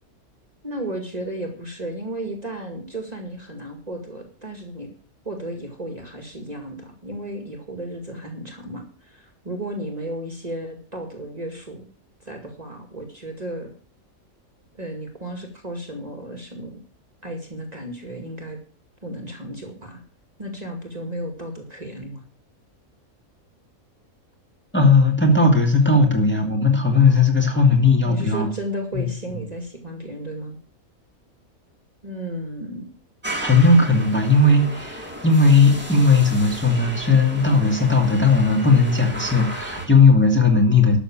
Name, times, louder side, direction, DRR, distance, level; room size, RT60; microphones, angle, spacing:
voice 1, 0.6-4.9 5.2-11.9 12.2-13.7 14.7-16.8 17.2-18.6 19.0-20.0 20.4-22.2 28.0-30.6 32.0-32.9, right 1 dB, 30° right, 3 dB, 2.2 m, -34 dB
voice 2, 24.7-28.5 28.9-29.0 33.4-41.0, left 3 dB, 10° left, 1 dB, 2.3 m, -17 dB
sound 1, 33.2-39.9, equal, 5° right, 2.3 m, -34 dB
12.5 x 7.0 x 7.3 m, 0.41 s
omnidirectional pair, 1.5 m